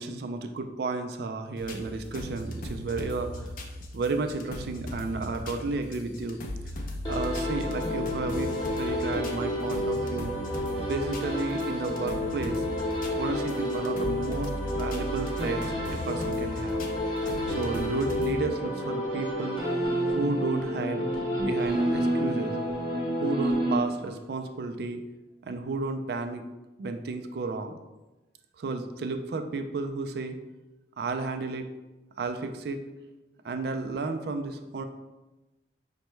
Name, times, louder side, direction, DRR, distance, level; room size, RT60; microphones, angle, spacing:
voice 1, 0.0-3.5 3.9-6.4 7.1-8.5 8.8-10.3 10.8-12.7 13.1-15.6 15.9-16.8 17.5-19.6 20.0-21.1 21.4-22.6 23.2-25.0 25.4-26.4 26.8-27.8 28.6-30.4 31.0-31.7 32.2-32.8 33.4-34.8, right 3 dB, 60° right, 7 dB, 0.3 m, -32 dB
sound 1, 1.6-18.4, left 1 dB, 45° left, 0.4 m, -38 dB
sound 2, 7.0-24.3, equal, 25° left, 0.9 m, -30 dB
5.3 x 2.2 x 3.0 m, 1.1 s
head